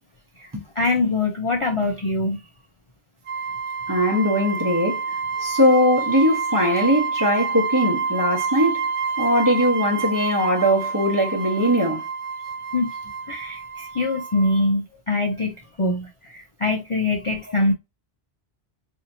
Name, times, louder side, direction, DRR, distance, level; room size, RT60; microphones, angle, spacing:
voice 1, 0.8-2.4 12.7-12.9 13.3-17.7, left 2 dB, 40° left, 0.5 m, -23 dB
sound 1, 3.3-14.7, right 5 dB, 60° right, 0.3 m, -28 dB
voice 2, 3.9-5.0 5.4-8.9 9.2-12.0, equal, 20° right, 0.9 m, -20 dB
4.3 x 2.8 x 2.7 m
omnidirectional pair, 1.1 m